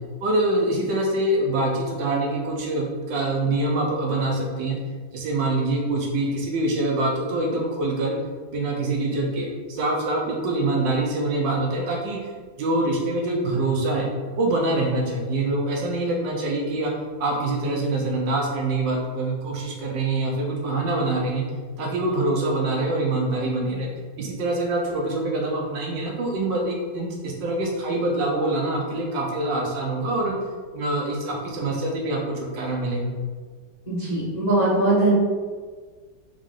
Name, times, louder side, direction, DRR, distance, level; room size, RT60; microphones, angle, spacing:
voice 1, 0.2-4.8 5.1-8.2 8.5-12.3 12.6-14.1 14.4-16.9 17.2-21.4 21.8-23.9 24.2-30.3 30.7-33.1, right 2 dB, 70° right, -1 dB, 1.3 m, -25 dB
voice 2, 33.9-35.1, right 2 dB, 25° left, -11 dB, 1.0 m, -21 dB
3.6 x 3.5 x 3.7 m, 1.5 s
omnidirectional pair, 2.1 m